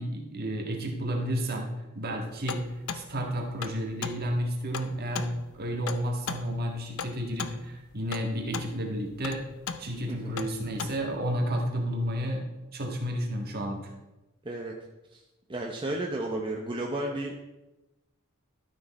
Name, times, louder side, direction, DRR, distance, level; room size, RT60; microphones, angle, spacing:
voice 1, 0.0-1.7 2.0-2.6 2.9-9.4 9.8-12.4 12.7-13.8, equal, 45° right, 1 dB, 1.6 m, -31 dB
sound 1, 2.5-11.1, left 6 dB, 70° left, 0.6 m, -38 dB
voice 2, 14.4-14.7 15.1-15.2 15.5-17.3, right 1 dB, 20° right, 0 dB, 0.7 m, -33 dB
12.5 x 6.4 x 4.2 m, 1.0 s
head